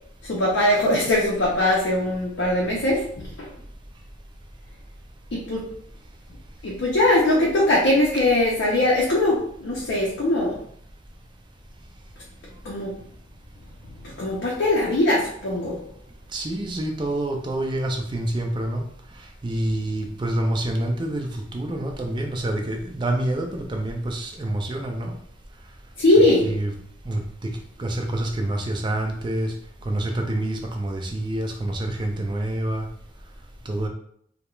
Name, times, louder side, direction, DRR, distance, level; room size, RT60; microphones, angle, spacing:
voice 1, 0.2-3.5 5.3-5.6 6.6-10.6 12.6-12.9 13.9-15.8 26.0-26.5, left 1 dB, 65° left, -4 dB, 0.5 m, -21 dB
voice 2, 16.3-18.8 19.4-25.1 26.4-26.7 27.1-27.2 27.8-29.5 29.9-32.9 33.7-33.9, right 1 dB, 25° right, 2 dB, 0.3 m, -27 dB
2.3 x 2.1 x 3.0 m, 0.66 s
head